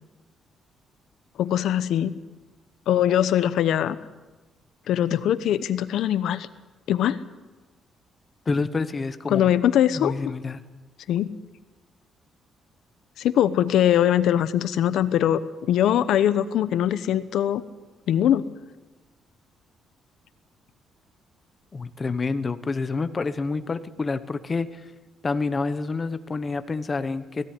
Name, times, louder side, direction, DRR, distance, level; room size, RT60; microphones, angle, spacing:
voice 1, 1.4-2.1 2.9-4.0 4.9-6.5 6.9-7.2 9.3-10.1 11.1-11.3 13.2-15.4 15.7-17.6 18.1-18.5, left 11 dB, 70° left, 13 dB, 0.9 m, -21 dB
voice 2, 8.5-9.5 9.8-10.6 21.7-24.8 25.2-27.5, left 4 dB, 20° left, 12 dB, 0.9 m, -28 dB
17.0 x 16.0 x 9.5 m, 1.2 s
cardioid pair, 175°, 0 cm